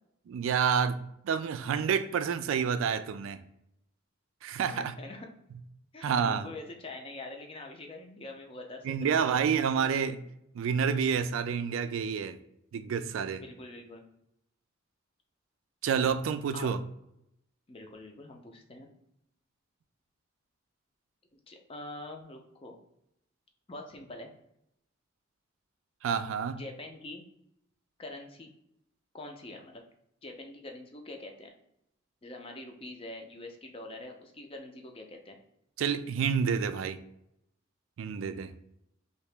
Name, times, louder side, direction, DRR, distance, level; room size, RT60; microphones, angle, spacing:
voice 1, 0.3-3.4 4.4-4.9 6.0-6.5 8.8-10.2 10.5-12.4 12.7-13.4 15.8-16.8 26.0-26.6 35.8-37.0 38.0-38.5, right 7 dB, 80° right, 11 dB, 0.3 m, -29 dB
voice 2, 4.7-5.3 5.9-9.4 13.4-14.0 16.0-16.1 16.5-16.7 17.7-18.9 21.3-22.8 23.7-24.3 26.6-27.2 28.0-28.5 29.1-29.8 30.2-31.5 32.2-35.4, left 2 dB, 30° left, 3 dB, 0.5 m, -44 dB
3.0 x 2.8 x 3.3 m, 0.79 s
head